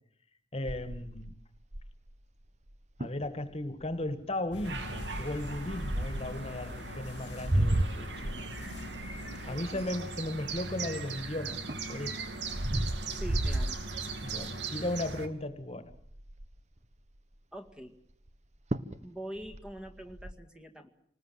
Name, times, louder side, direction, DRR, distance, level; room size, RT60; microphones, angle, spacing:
voice 1, 0.5-1.3 3.0-8.5 9.5-12.2 14.2-15.9, left 1 dB, 35° left, 1.9 m, -36 dB
sound 1, 0.7-2.1 2.7-2.8 3.0-3.3 3.8-4.1 4.9-6.4 7.1-11.0 11.5-14.5 15.0-15.2 15.5-15.6 15.9-16.6 18.3-18.4 18.7-19.0 19.4-20.3, right 1 dB, 40° right, 1.1 m, -33 dB
sound 2, 4.5-9.7, left 2 dB, 70° left, 1.2 m, -44 dB
sound 3, 4.6-15.3, right 4 dB, 80° right, 2.5 m, -40 dB
voice 2, 9.4-9.9 13.1-13.8 17.5-18.0 19.0-20.9, right 1 dB, 5° right, 2.0 m, -44 dB
27.5 x 20.0 x 7.7 m
head